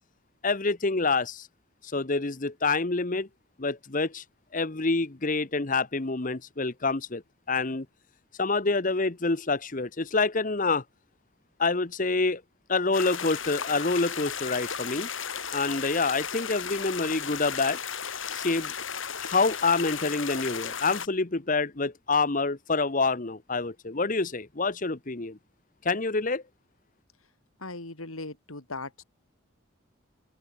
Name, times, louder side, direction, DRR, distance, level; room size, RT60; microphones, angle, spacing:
voice 1, 0.4-1.5 1.9-3.3 3.6-4.2 4.5-7.2 7.5-7.9 8.4-10.8 11.6-12.4 12.7-15.1 15.5-17.8 18.3-18.7 19.2-25.4 25.8-26.4, left 3 dB, 40° left, 1.1 m, -27 dB
sound 1, 12.9-21.1, left 7 dB, 65° left, 5.4 m, -35 dB
voice 2, 27.6-29.0, left 2 dB, 90° left, 4.1 m, -38 dB
open air
head